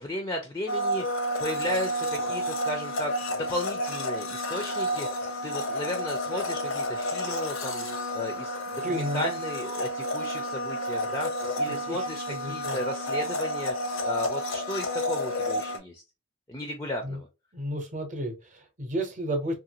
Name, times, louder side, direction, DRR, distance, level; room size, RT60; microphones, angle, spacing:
voice 1, 0.0-7.9 8.1-13.7 14.0-16.0 16.5-17.3, left 1 dB, 15° left, 0.4 m, -34 dB
Domestic sounds home sounds, 0.7-15.8, equal, 90° left, 0.8 m, -31 dB
voice 2, 8.8-9.4 11.9-12.0 12.3-12.8 17.0-17.2 17.5-19.5, equal, 40° right, 0.8 m, -32 dB
2.9 x 2.4 x 2.8 m
head